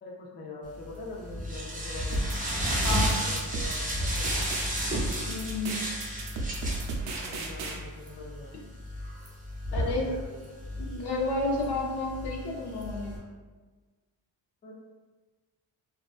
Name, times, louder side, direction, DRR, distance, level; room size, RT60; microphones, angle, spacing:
voice 1, 0.0-2.3 3.0-4.4 7.0-8.5 9.7-10.5 14.6-14.7, left 2 dB, 25° left, -2 dB, 0.4 m, -44 dB
sound 1, 0.7-13.2, equal, 20° right, 0.6 m, -33 dB
sound 2, 2.1-7.8, right 3 dB, 80° right, 0.5 m, -35 dB
voice 2, 2.8-3.2 5.3-5.9 7.1-7.3 9.7-10.1 10.8-13.2, left 2 dB, 65° left, -1 dB, 0.6 m, -31 dB
2.4 x 2.3 x 2.3 m, 1.4 s
cardioid pair, 90°, 44 cm